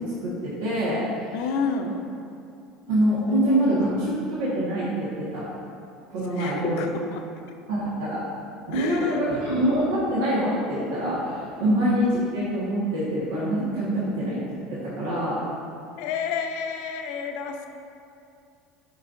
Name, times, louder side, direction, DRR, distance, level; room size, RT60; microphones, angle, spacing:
voice 1, 0.2-1.0 2.9-5.1 5.3-5.4 6.1-6.8 7.7-8.2 8.7-14.4 14.7-15.4, right 1 dB, 90° right, -9 dB, 1.6 m, -25 dB
voice 2, 1.3-1.9 3.3-3.7 6.3-7.2 8.7-9.2 11.6-11.7 16.0-17.7, left 6 dB, 75° left, 4 dB, 0.6 m, -30 dB
10.0 x 5.4 x 2.6 m, 2.6 s
supercardioid pair, 100°, 0 cm